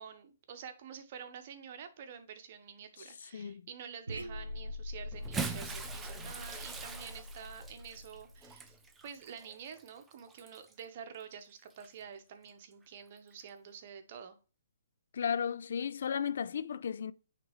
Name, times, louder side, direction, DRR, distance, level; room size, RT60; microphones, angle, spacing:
voice 1, 0.0-8.8 9.0-14.4, right 7 dB, 45° right, 1.0 m, -48 dB
voice 2, 3.0-3.6 15.1-17.1, left 7 dB, 60° left, 0.3 m, -35 dB
sound 1, 4.1-8.7, left 2 dB, 90° right, 0.6 m, -44 dB
Bathtub (filling or washing) / Splash splatter, 5.1-10.8 11.7-11.9 13.3-13.4, right 5 dB, 10° right, 0.5 m, -43 dB
9.2 x 3.4 x 3.1 m
hypercardioid pair, 135°, 0 cm